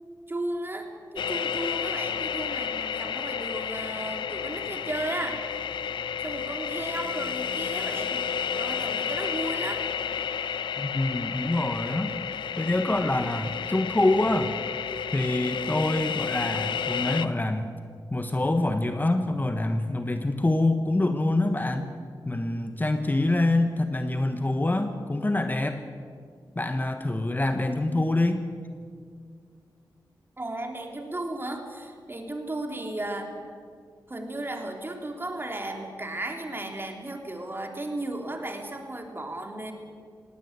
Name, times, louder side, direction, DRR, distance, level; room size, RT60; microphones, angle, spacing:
voice 1, 0.3-5.5 6.2-8.2 8.5-9.9 30.4-33.4 34.1-39.7, right 1 dB, 30° right, 3 dB, 3.3 m, -35 dB
sound 1, 1.2-17.3, left 7 dB, 90° left, 0.7 m, -31 dB
voice 2, 10.8-12.2 12.6-14.6 15.1-17.7 18.1-21.9 22.3-25.8 26.5-28.4, left 2 dB, 25° left, 7 dB, 1.3 m, -25 dB
19.0 x 17.0 x 8.2 m, 2.1 s
cardioid pair, 60°, 8 cm